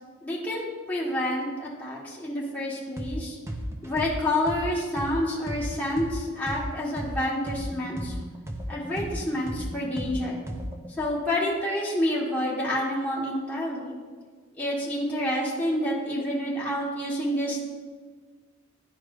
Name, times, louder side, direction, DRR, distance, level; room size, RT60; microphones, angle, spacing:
voice 1, 0.2-3.4 3.8-8.1 8.7-10.4 11.0-13.9 14.6-17.7, left 1 dB, 10° left, -6 dB, 1.3 m, -28 dB
sound 1, 3.0-3.2 3.5-7.2 7.5-10.9, right 1 dB, 15° right, 0.5 m, -35 dB
11.0 x 4.7 x 2.5 m, 1.5 s
head